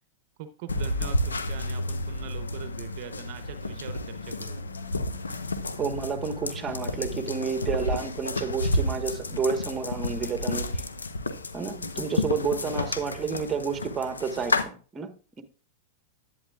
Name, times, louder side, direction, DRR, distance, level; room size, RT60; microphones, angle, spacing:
voice 1, 0.4-4.6 12.6-12.7, right 10 dB, 55° right, 0.8 m, -42 dB
sound 1, 0.7-14.6, left 2 dB, 90° left, 0.9 m, -31 dB
voice 2, 5.8-10.8 11.5-15.4, right 6 dB, 20° right, 1.2 m, -30 dB
11.0 x 8.9 x 2.4 m
hypercardioid pair, 100°, 0 cm